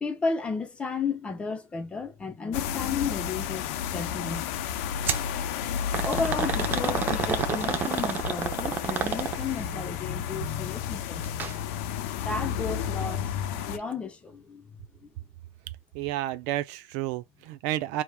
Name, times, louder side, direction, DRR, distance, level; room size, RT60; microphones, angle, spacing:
voice 1, 0.0-4.6 6.0-11.9 12.1-15.1, left 4 dB, 15° left, 0.9 m, -34 dB
sound 1, 2.5-13.8, left 9 dB, 70° left, 0.7 m, -32 dB
sound 2, 5.1-5.3 5.9-9.6 11.2-11.5 11.9-12.0 12.8-12.9, right 7 dB, 25° right, 0.7 m, -29 dB
voice 2, 15.9-18.0, right 14 dB, 60° right, 0.5 m, -31 dB
5.0 x 3.0 x 2.2 m
cardioid pair, 160°, 8 cm